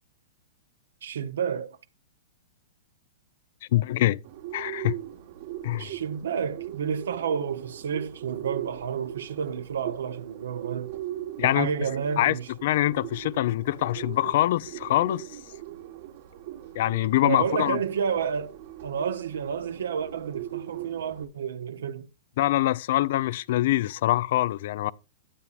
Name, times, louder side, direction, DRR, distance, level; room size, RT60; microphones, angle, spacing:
voice 1, 1.0-1.8 5.8-10.9 11.4-12.5 17.2-18.5 18.8-22.1, right 7 dB, 80° right, 0.8 m, -30 dB
voice 2, 3.7-4.2 4.5-5.0 5.6-5.9 11.4-11.7 12.2-12.4 12.6-15.3 16.7-17.8 22.4-24.9, left 15 dB, 60° left, 0.4 m, -24 dB
Bird, 4.2-21.2, right 13 dB, 55° right, 1.3 m, -40 dB
12.5 x 9.3 x 2.4 m
hypercardioid pair, 120°, 0 cm